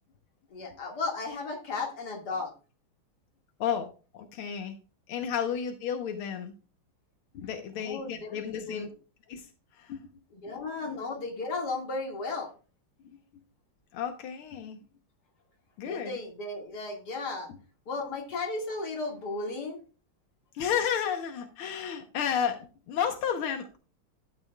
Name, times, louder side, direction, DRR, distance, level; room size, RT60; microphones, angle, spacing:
voice 1, 0.5-2.5 7.8-8.3 8.7-8.9 10.4-12.5 15.8-17.5 17.9-19.8, left 3 dB, 50° left, 1 dB, 2.6 m, -34 dB
voice 2, 3.6-4.8 5.1-6.5 7.3-8.9 9.3-9.5 9.7-10.1 10.5-10.6 13.9-14.8 15.8-16.2 17.5-17.6 20.5-23.8, left 8 dB, 85° left, 5 dB, 1.9 m, -32 dB
12.5 x 8.7 x 2.3 m, 0.34 s
omnidirectional pair, 2.3 m